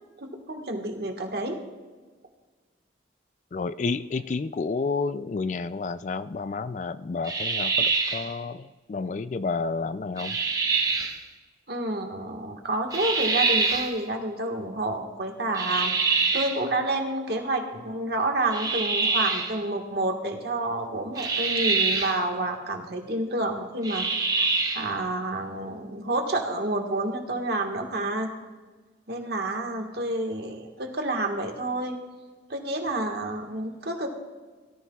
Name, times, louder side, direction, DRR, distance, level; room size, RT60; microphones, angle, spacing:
voice 1, 0.2-1.6 11.7-15.9 16.3-28.3 29.1-32.0 32.5-34.1, right 2 dB, 55° right, 3 dB, 1.5 m, -29 dB
voice 2, 3.5-10.4, left 4 dB, 40° left, 14 dB, 0.3 m, -30 dB
sound 1, 7.3-8.3 10.2-11.2 12.9-14.0 15.6-16.6 18.5-19.6 21.2-22.2 23.8-24.9, right 4 dB, 20° right, 0.8 m, -25 dB
17.5 x 14.0 x 2.4 m, 1.4 s
head